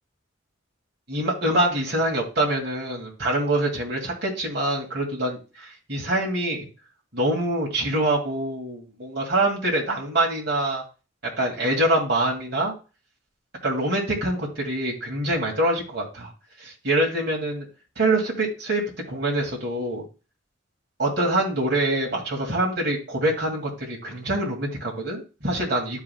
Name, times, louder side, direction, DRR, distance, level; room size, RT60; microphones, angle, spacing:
voice 1, 1.1-6.7 7.1-10.8 11.4-12.7 13.6-16.3 16.6-17.7 18.0-18.8 19.1-20.0 21.0-26.0, right 1 dB, 55° right, -1 dB, 2.1 m, -25 dB
13.0 x 4.9 x 2.2 m, 0.33 s
head